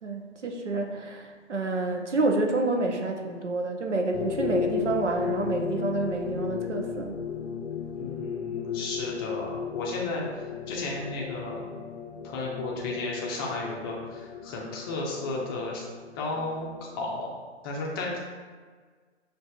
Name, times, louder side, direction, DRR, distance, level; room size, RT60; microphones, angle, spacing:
voice 1, 0.0-7.2, right 3 dB, 85° right, 3 dB, 0.7 m, -28 dB
sound 1, 4.1-17.3, left 7 dB, 70° left, 0.5 m, -35 dB
voice 2, 7.9-10.2 10.7-11.6 12.2-15.8 16.2-16.7 17.0-17.3 17.6-18.2, left 2 dB, 20° left, -2 dB, 0.5 m, -33 dB
6.1 x 2.6 x 2.3 m, 1.5 s
figure-of-eight pair, 120°, 35 cm